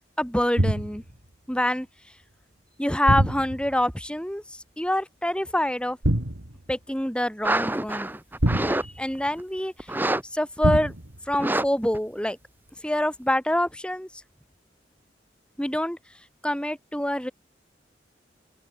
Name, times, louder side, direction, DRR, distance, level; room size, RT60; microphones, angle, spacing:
voice 1, 0.2-1.0 1.5-1.9 2.8-4.4 4.8-6.0 6.7-8.2 8.7-9.7 10.3-10.9 11.3-12.4 12.8-14.1 15.6-16.0 16.4-17.3, left 1 dB, 5° left, 3.7 m, -26 dB
sound 1, 0.6-1.1 3.1-3.8 6.0-6.6 8.4-9.3 10.6-11.2, right 1 dB, 90° right, 3.1 m, -25 dB
sound 2, 7.4-8.8 9.2-9.4 9.8-10.2 10.6-10.7 11.3-11.7 11.9-12.0, right 1 dB, 10° right, 1.7 m, -26 dB
open air
head